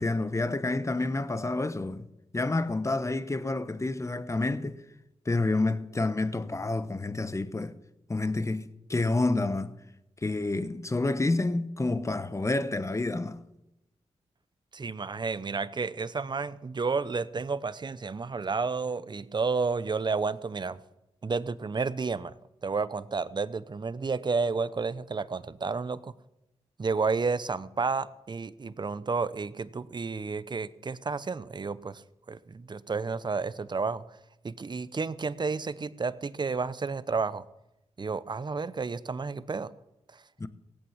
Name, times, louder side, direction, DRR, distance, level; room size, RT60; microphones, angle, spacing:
voice 1, 0.0-2.1 2.3-4.8 5.3-7.7 8.1-9.7 10.2-13.4 40.4-40.5, left 2 dB, 25° left, 1.0 m, -29 dB
voice 2, 14.7-20.8 21.2-22.3 22.6-26.1 26.8-32.0 32.3-34.0 34.4-37.4 38.0-39.7 40.1-40.2, right 4 dB, 40° right, 0.7 m, -31 dB
17.0 x 8.6 x 7.4 m
cardioid pair, 60°, 12 cm